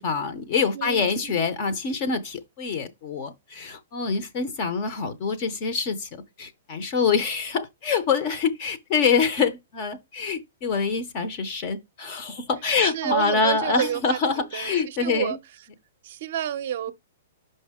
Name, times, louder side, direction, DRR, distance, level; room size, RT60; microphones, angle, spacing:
voice 1, 0.0-15.4, left 5 dB, 30° left, 0.6 m, -25 dB
voice 2, 0.7-1.4 12.8-15.4 16.0-16.9, right 10 dB, 45° right, 0.6 m, -30 dB
5.7 x 5.4 x 3.5 m
hypercardioid pair, 175°, 0 cm